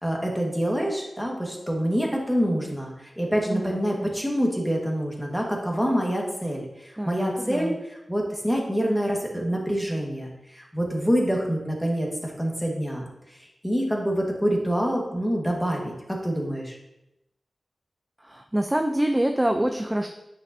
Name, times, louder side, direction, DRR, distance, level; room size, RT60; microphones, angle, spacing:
voice 1, 0.0-13.1 13.6-16.8, equal, 5° left, -1 dB, 1.5 m, -26 dB
voice 2, 3.5-4.1 7.0-7.8 18.2-20.1, right 1 dB, 10° right, 4 dB, 0.4 m, -26 dB
9.4 x 6.5 x 2.7 m, 0.90 s
wide cardioid pair, 100°, 0 cm